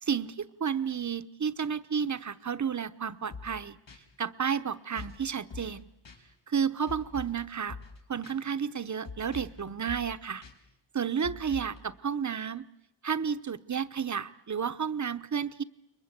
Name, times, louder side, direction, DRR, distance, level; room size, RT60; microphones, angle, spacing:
voice 1, 0.0-3.8 4.2-5.9 6.5-7.8 8.1-10.4 10.9-12.7 13.0-15.6, right 7 dB, 40° right, 11 dB, 1.0 m, -31 dB
sound 1, 3.3-3.6 3.9-4.0 5.0-5.2 5.5-5.8 6.1-6.2 6.9-7.4 7.7-8.0 8.2-8.3 9.1-9.6 9.9-10.1 10.4-10.5 11.2-11.8, left 4 dB, 80° left, 6.1 m, -43 dB
29.5 x 23.0 x 8.3 m, 0.83 s
wide cardioid pair, 120°, 44 cm